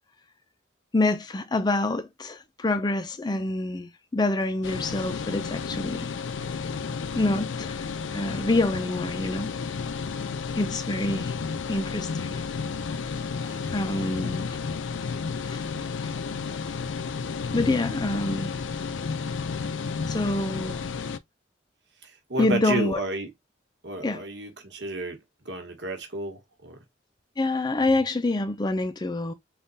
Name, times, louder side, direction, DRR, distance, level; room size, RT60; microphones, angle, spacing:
voice 1, 0.9-6.1 7.2-9.6 10.5-11.4 11.7-12.4 12.9-13.0 13.7-14.6 15.5-15.6 16.0-16.1 17.5-18.5 20.1-20.8 22.4-23.0 24.0-24.2 27.4-29.3, left 2 dB, 20° left, 0.4 m, -27 dB
sound 1, 4.6-21.2, left 5 dB, 85° left, 0.5 m, -32 dB
voice 2, 13.4-13.8 22.0-23.3 23.8-25.2 25.4-26.8, right 2 dB, 65° right, 1.3 m, -32 dB
3.7 x 2.3 x 4.0 m
head